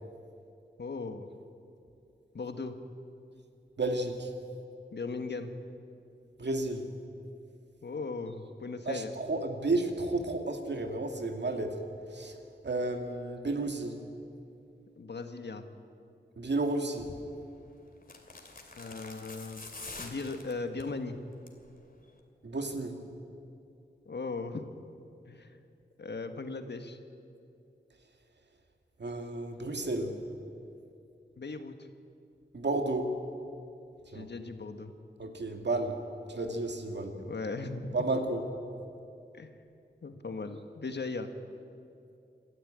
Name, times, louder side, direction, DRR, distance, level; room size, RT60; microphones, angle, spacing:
voice 1, 0.8-1.3 2.3-2.8 4.9-5.5 7.8-9.1 15.0-15.6 18.8-19.7 20.0-21.2 24.0-24.7 25.2-25.6 26.0-27.0 31.4-31.9 34.1-34.9 37.1-38.0 39.3-39.5 40.0-41.3, left 3 dB, 65° left, 7 dB, 1.5 m, -38 dB
voice 2, 3.8-4.3 6.4-6.9 8.9-11.8 12.1-14.0 16.4-17.1 22.4-23.0 29.0-30.2 32.5-33.1 34.1-34.3 35.2-36.0 36.3-37.2 37.9-38.4, right 2 dB, 70° right, 5 dB, 2.2 m, -32 dB
sound 1, 17.0-17.2 18.0-20.9 21.3-21.7 21.9-22.0, left 3 dB, 50° left, 2.7 m, -46 dB
27.0 x 13.0 x 8.9 m, 2.6 s
wide cardioid pair, 80°, 19 cm